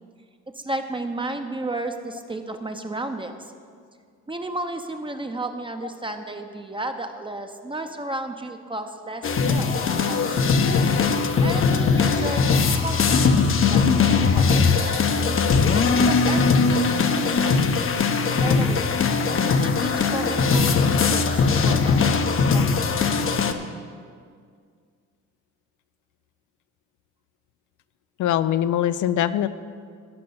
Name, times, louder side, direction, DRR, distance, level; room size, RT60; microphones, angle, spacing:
voice 1, 0.5-3.5 4.3-9.7 10.1-10.6 11.4-15.4 15.9-17.6 18.4-18.9 19.4-23.4, right 2 dB, 15° right, 5 dB, 0.7 m, -33 dB
sound 1, 9.2-23.5, left 5 dB, 45° left, 0.8 m, -20 dB
voice 2, 28.2-29.5, left 11 dB, 75° left, 14 dB, 0.5 m, -23 dB
13.0 x 5.3 x 7.0 m, 2.1 s
cardioid pair, 90°, 30 cm